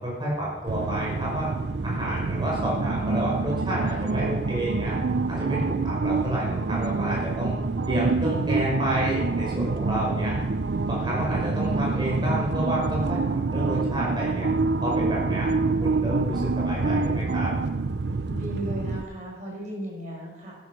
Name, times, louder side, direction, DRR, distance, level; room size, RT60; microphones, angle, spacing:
voice 1, 0.0-1.5 1.8-5.0 5.3-7.5 7.9-10.4 10.9-13.2 13.5-14.5 14.8-15.5 15.8-17.5, right 1 dB, 25° right, -4 dB, 5.7 m, -29 dB
sound 1, 0.7-19.0, right 3 dB, 70° right, 0.6 m, -26 dB
voice 2, 18.3-20.5, right 1 dB, 40° right, -3 dB, 6.2 m, -36 dB
12.5 x 11.5 x 6.1 m, 1.1 s
head